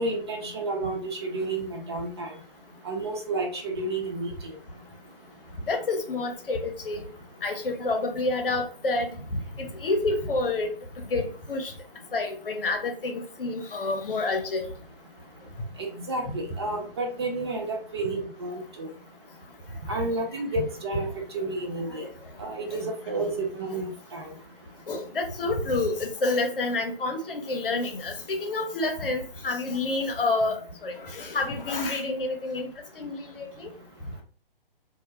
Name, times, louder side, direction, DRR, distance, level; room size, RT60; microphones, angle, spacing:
voice 1, 0.0-2.3 2.8-4.3 15.8-18.9 19.9-21.1 21.3-22.1 22.4-24.3, right 2 dB, 30° right, 2 dB, 0.4 m, -31 dB
voice 2, 5.7-7.1 7.4-9.1 9.6-10.7 11.1-11.7 12.1-14.6 24.9-32.7 33.0-33.7, left 3 dB, 65° left, 5 dB, 0.8 m, -28 dB
2.2 x 2.1 x 3.1 m, 0.41 s
figure-of-eight pair, 130°, 29 cm